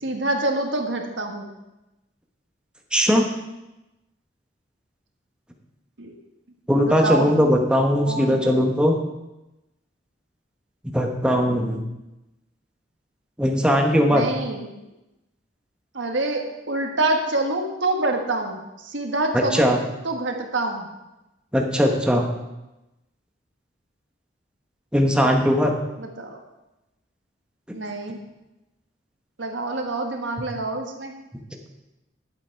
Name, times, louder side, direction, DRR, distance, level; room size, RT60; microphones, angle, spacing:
voice 1, 0.0-1.5 6.0-6.2 6.8-7.3 8.1-8.6 14.1-14.7 15.9-19.7 20.0-20.9 26.0-26.4 27.7-28.2 29.4-31.1, right 2 dB, 75° right, 3 dB, 1.5 m, -26 dB
voice 2, 2.9-3.2 6.7-8.9 10.9-11.8 13.4-14.3 19.3-19.8 21.5-22.3 24.9-25.8, equal, 5° right, 1 dB, 1.2 m, -19 dB
10.5 x 8.2 x 4.6 m, 0.97 s
head